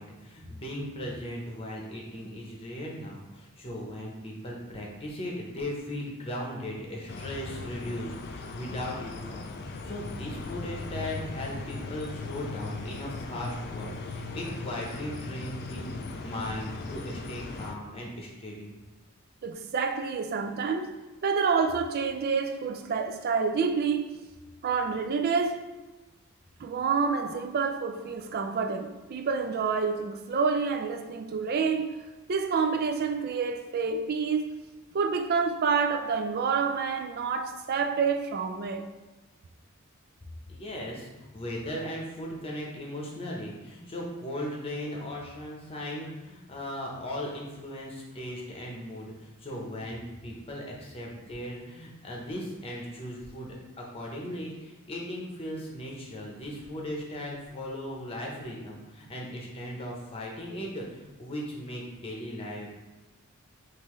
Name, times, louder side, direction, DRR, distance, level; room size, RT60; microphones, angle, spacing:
voice 1, 0.0-18.7 40.5-62.7, left 1 dB, 25° left, 0.8 m, -38 dB
sound 1, 7.1-17.7, left 3 dB, 50° left, 0.4 m, -38 dB
voice 2, 19.4-20.9 21.2-24.2 24.6-25.7 26.6-31.9 32.3-34.6 34.9-38.9, right 5 dB, 45° right, 0.4 m, -28 dB
5.5 x 2.6 x 3.1 m
head